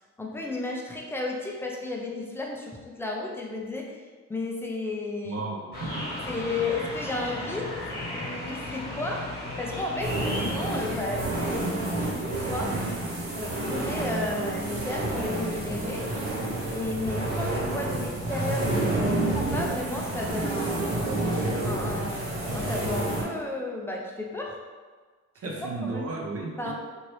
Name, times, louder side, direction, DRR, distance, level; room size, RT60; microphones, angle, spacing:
voice 1, 0.2-5.4 6.3-11.7 11.9-12.8 13.3-16.1 16.7-20.9 21.6-24.6 25.4-26.1 26.6-26.7, left 2 dB, 10° left, -1 dB, 0.5 m, -33 dB
voice 2, 5.2-6.1 12.7-13.0 25.4-26.7, right 3 dB, 50° right, -1 dB, 0.7 m, -34 dB
sound 1, 5.7-11.0, left 1 dB, 30° left, 1.3 m, -35 dB
sound 2, 10.0-23.2, right 2 dB, 75° right, 1.3 m, -29 dB
2.8 x 2.7 x 3.1 m, 1.5 s
cardioid pair, 90°, 30 cm